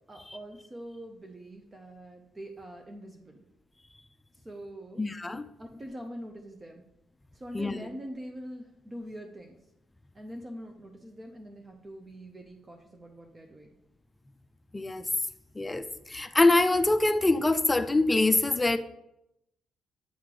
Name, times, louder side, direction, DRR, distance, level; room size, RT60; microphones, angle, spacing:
voice 1, 0.1-3.4 4.4-5.0 5.6-6.9 7.3-9.6 10.1-13.7, equal, 25° right, 0.7 m, -44 dB
voice 2, 5.0-5.5 7.5-7.8 14.7-15.0 15.6-15.8 16.1-18.8, left 2 dB, 15° left, 0.4 m, -24 dB
8.3 x 3.1 x 3.8 m
cardioid pair, 90°, 0 cm